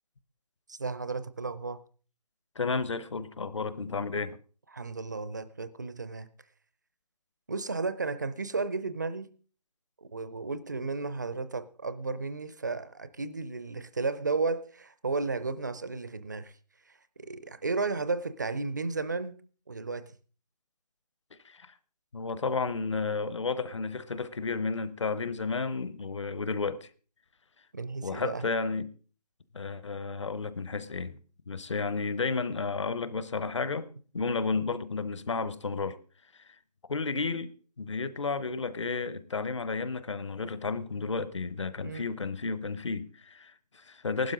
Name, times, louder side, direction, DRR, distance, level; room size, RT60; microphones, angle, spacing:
voice 1, 0.7-1.8 4.7-6.3 7.5-9.3 10.0-16.5 17.2-19.4 19.7-20.1 27.7-28.4 41.8-42.1, right 4 dB, 25° right, 0.5 m, -33 dB
voice 2, 2.6-4.4 21.4-21.7 22.1-26.9 28.0-28.9 29.5-31.2 31.5-33.9 34.1-36.0 36.9-44.3, left 4 dB, 45° left, 0.9 m, -32 dB
15.5 x 12.0 x 3.8 m
figure-of-eight pair, 165°, 21 cm